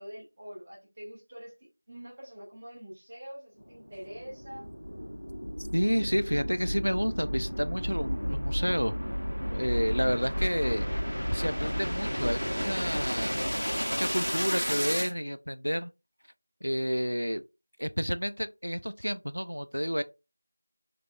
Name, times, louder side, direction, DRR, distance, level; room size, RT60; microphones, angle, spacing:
voice 1, 0.0-4.7, equal, 15° right, 0.8 m, -45 dB
sound 1, 3.6-15.1, equal, 85° left, 0.7 m, -32 dB
voice 2, 5.7-9.0 9.5-13.4 14.0-15.9 16.6-17.4 17.8-20.0, equal, 85° right, 0.3 m, -30 dB
3.3 x 3.1 x 2.4 m
figure-of-eight pair, 175°, 0 cm